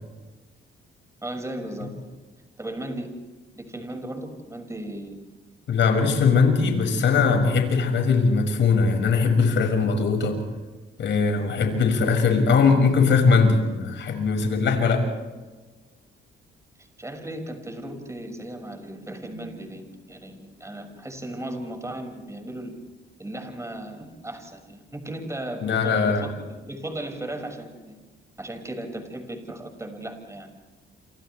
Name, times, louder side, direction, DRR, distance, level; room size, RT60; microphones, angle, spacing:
voice 1, 1.2-2.2 2.6-3.1 3.5-5.2 16.8-22.7 23.2-28.0 28.4-30.5, right 1 dB, 15° right, 4 dB, 6.0 m, -36 dB
voice 2, 5.7-10.3 11.0-15.0 25.6-26.3, left 5 dB, 70° left, 4 dB, 6.2 m, -20 dB
29.0 x 27.5 x 3.4 m, 1.2 s
cardioid pair, 90°, 20 cm